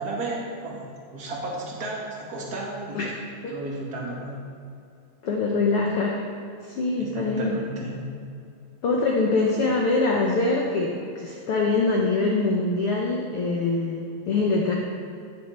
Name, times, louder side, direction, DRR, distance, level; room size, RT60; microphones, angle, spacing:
voice 1, 0.0-3.0 3.5-4.4 7.0-8.0, right 2 dB, 35° right, -3 dB, 1.8 m, -33 dB
voice 2, 5.2-6.3 6.6-7.6 8.8-14.8, left 3 dB, 75° left, -1 dB, 1.3 m, -24 dB
17.5 x 7.1 x 4.4 m, 2.5 s
omnidirectional pair, 4.0 m